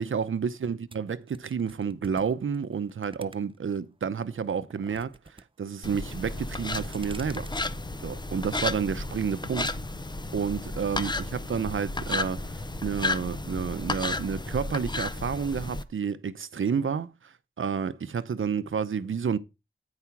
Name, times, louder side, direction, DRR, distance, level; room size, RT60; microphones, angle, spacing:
voice 1, 0.0-5.1 5.6-7.5 8.0-9.7 10.3-19.4, right 6 dB, 90° right, 0.7 m, -30 dB
sound 1, 0.9-3.8 4.2-5.4 5.7-6.2 6.6-7.7, right 3 dB, 25° right, 0.5 m, -48 dB
sound 2, 5.8-15.8, left 2 dB, 20° left, 0.6 m, -33 dB
9.7 x 4.9 x 5.8 m
wide cardioid pair, 85°, 20 cm